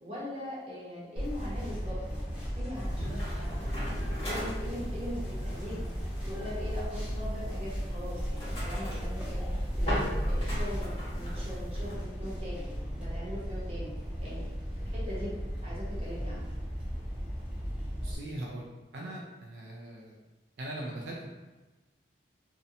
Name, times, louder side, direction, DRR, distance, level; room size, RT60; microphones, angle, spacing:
voice 1, 0.0-3.6 4.0-5.7 6.2-9.4 9.7-13.9 14.2-14.4 14.8-15.3 15.6-16.5, left 1 dB, 35° right, -7 dB, 0.8 m, -41 dB
sound 1, 1.2-18.1, equal, 5° right, 0.6 m, -35 dB
sound 2, 2.3-9.9, left 1 dB, 65° left, 0.7 m, -50 dB
sound 3, 2.7-11.9, equal, 30° left, 1.1 m, -40 dB
voice 2, 18.0-18.7 18.9-20.2 20.6-21.3, right 1 dB, 70° right, -3 dB, 0.4 m, -40 dB
2.6 x 2.1 x 2.6 m, 1.2 s
head